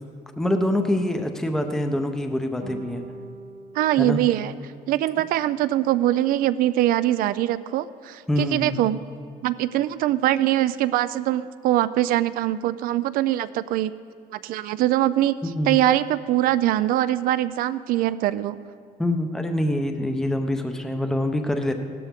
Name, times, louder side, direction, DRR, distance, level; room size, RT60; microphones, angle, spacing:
voice 1, 0.4-3.0 4.0-4.2 8.3-8.8 15.4-15.8 19.0-21.7, left 1 dB, 5° left, 6 dB, 0.6 m, -25 dB
sound 1, 2.6-5.2, right 3 dB, 50° right, 0.9 m, -43 dB
voice 2, 3.7-4.5 4.9-9.0 9.4-13.9 14.4-18.6, right 13 dB, 70° right, 14 dB, 0.4 m, -22 dB
16.0 x 13.0 x 3.6 m, 2.3 s
cardioid pair, 150°, 15 cm